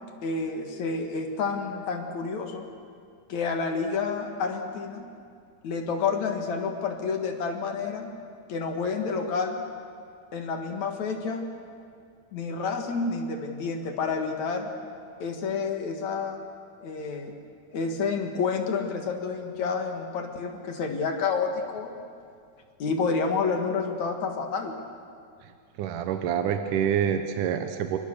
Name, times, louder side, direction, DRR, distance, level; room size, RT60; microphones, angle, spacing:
voice 1, 0.2-2.7 3.3-5.1 5.6-8.1 8.5-9.6 10.3-11.4 12.3-14.7 15.2-16.4 16.8-17.3 17.7-21.9 22.8-24.8, left 5 dB, 55° left, 4 dB, 2.8 m, -29 dB
voice 2, 25.8-28.0, right 8 dB, 70° right, 7 dB, 2.3 m, -26 dB
27.5 x 23.5 x 6.9 m, 2.3 s
omnidirectional pair, 4.3 m